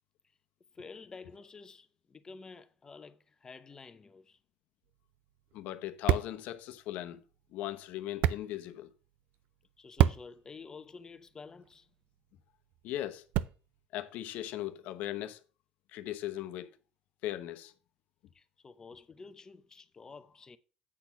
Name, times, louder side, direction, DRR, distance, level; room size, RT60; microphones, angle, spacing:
voice 1, 0.7-4.4 9.8-11.9 18.3-20.6, left 4 dB, 25° left, 0.7 m, -50 dB
sound 1, 4.8-13.9, right 13 dB, 70° right, 0.4 m, -35 dB
voice 2, 5.5-7.2 7.5-8.9 12.8-13.3 13.9-15.4 15.9-16.7 17.2-17.7, left 13 dB, 70° left, 0.9 m, -38 dB
8.5 x 4.4 x 5.9 m
cardioid pair, 125°, 3 cm